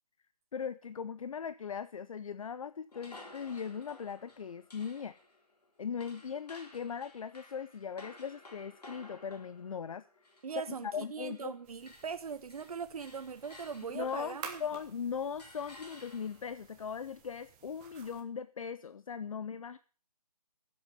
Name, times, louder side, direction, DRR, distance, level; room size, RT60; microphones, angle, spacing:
voice 1, 0.5-5.1 5.8-10.0 10.6-11.5 13.9-19.8, left 7 dB, 55° left, 15 dB, 0.5 m, -39 dB
sound 1, 2.9-11.5 11.8-14.9 15.4-16.6, left 2 dB, 80° left, 3.8 m, -55 dB
voice 2, 10.4-14.6, right 6 dB, 65° right, 10 dB, 0.7 m, -40 dB
sound 2, 11.6-18.2, right 7 dB, 10° right, 1.0 m, -52 dB
15.0 x 7.7 x 5.5 m, 0.40 s
hypercardioid pair, 165°, 20 cm